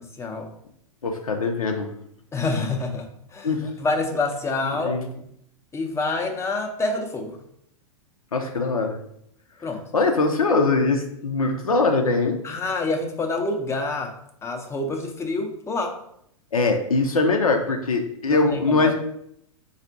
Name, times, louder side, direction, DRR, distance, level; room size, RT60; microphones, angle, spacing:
voice 1, 0.2-0.5 2.3-3.5 3.8-5.0 5.7-7.4 9.6-9.8 12.4-14.1 14.4-16.0 18.3-18.9, left 3 dB, 15° left, 3 dB, 0.7 m, -27 dB
voice 2, 1.0-1.9 3.4-3.6 4.6-5.1 8.3-9.0 9.9-12.4 16.5-18.9, left 3 dB, 90° left, 4 dB, 0.8 m, -22 dB
4.1 x 2.4 x 4.5 m, 0.72 s
hypercardioid pair, 110°, 18 cm